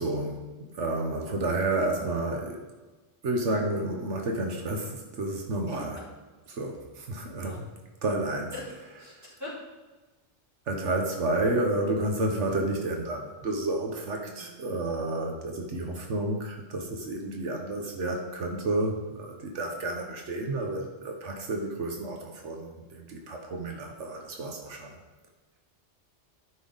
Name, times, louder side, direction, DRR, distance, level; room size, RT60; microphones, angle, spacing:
voice 1, 0.0-2.6 3.2-6.0 6.5-7.7 8.0-8.5 9.1-9.3 10.7-25.0, right 2 dB, 85° right, 1 dB, 1.4 m, -30 dB
voice 2, 7.3-7.6 8.5-9.6 14.2-14.6, left 1 dB, 15° right, -7 dB, 3.2 m, -43 dB
12.5 x 5.5 x 4.0 m, 1.2 s
omnidirectional pair, 1.2 m